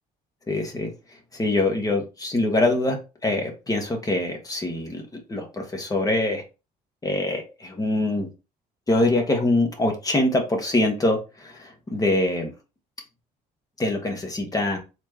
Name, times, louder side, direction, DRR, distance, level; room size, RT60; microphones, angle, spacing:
voice 1, 0.5-0.9 1.3-3.0 3.2-6.4 7.0-8.3 8.9-12.5 13.8-14.8, left 2 dB, 20° left, 3 dB, 1.3 m, -24 dB
4.3 x 3.3 x 2.8 m, 0.29 s
cardioid pair, 110°, 17 cm